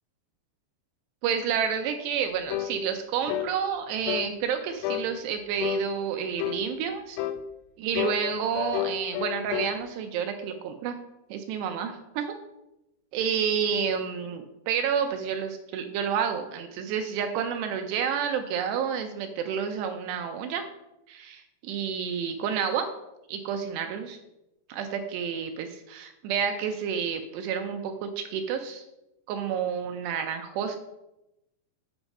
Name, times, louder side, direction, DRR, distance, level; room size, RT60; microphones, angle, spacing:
voice 1, 1.2-7.2 7.8-11.0 11.3-12.4 13.1-20.6 21.1-22.9 23.3-24.2 24.7-28.9 29.3-30.8, right 7 dB, 80° right, 6 dB, 2.6 m, -30 dB
sound 1, 2.5-2.8 3.3-3.5 4.1-4.3 4.8-5.1 5.6-5.9 6.4-6.7 7.2-7.4 8.0-9.8, left 12 dB, 85° left, 2.4 m, -30 dB
8.0 x 5.9 x 5.3 m, 0.90 s
omnidirectional pair, 5.2 m